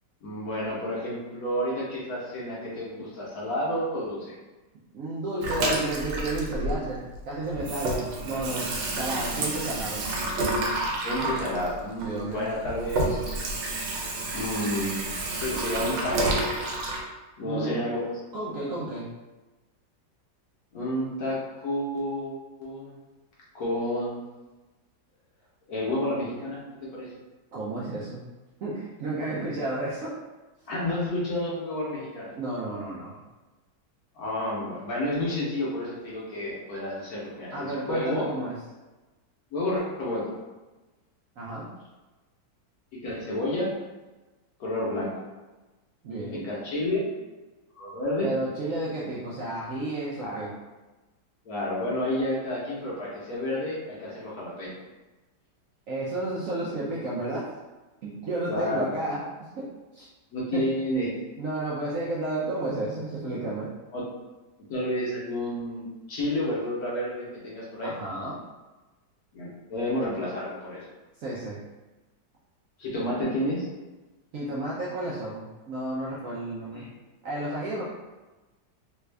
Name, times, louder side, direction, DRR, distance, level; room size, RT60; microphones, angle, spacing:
voice 1, 0.2-4.4 11.0-13.4 14.3-15.1 15.4-16.4 17.4-18.0 20.7-22.9 23.5-24.2 25.7-26.6 26.9-27.1 30.7-32.3 34.1-38.3 39.5-40.3 43.0-43.7 44.6-45.1 46.3-47.1 47.8-48.3 50.2-50.4 51.4-54.7 58.5-58.9 60.3-61.2 63.9-64.1 64.7-67.9 69.3-70.8 72.8-73.7 76.7-76.9, left 1 dB, 60° left, -5 dB, 1.2 m, -30 dB
voice 2, 4.9-10.1 12.0-12.4 17.4-17.8 18.3-19.1 27.5-28.2 28.6-30.2 32.3-33.2 37.5-38.6 41.4-41.7 46.0-46.5 48.2-50.5 55.9-57.5 58.0-59.7 59.9-60.1 60.5-60.7 61.4-63.7 67.8-68.4 71.2-71.6 74.3-76.8 77.2-77.8, right 2 dB, 70° right, -6 dB, 0.8 m, -32 dB
Water tap faucet / Sink (filling or washing), 5.4-7.2 7.5-17.0, right 2 dB, 85° right, 1.4 m, -29 dB
3.4 x 2.3 x 3.2 m, 1.1 s
omnidirectional pair, 1.9 m